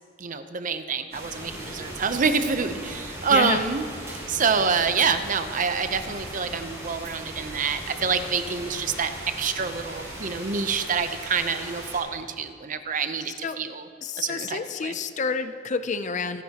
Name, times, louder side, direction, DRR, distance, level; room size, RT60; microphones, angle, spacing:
voice 1, 0.2-13.9 14.2-15.0, right 5 dB, 45° right, 9 dB, 0.7 m, -27 dB
sound 1, 1.1-12.0, right 1 dB, 15° right, 4.4 m, -38 dB
voice 2, 3.3-3.6 13.4-13.6 14.0-16.4, left 4 dB, 40° left, 11 dB, 0.5 m, -29 dB
26.5 x 10.5 x 2.9 m, 2.1 s
head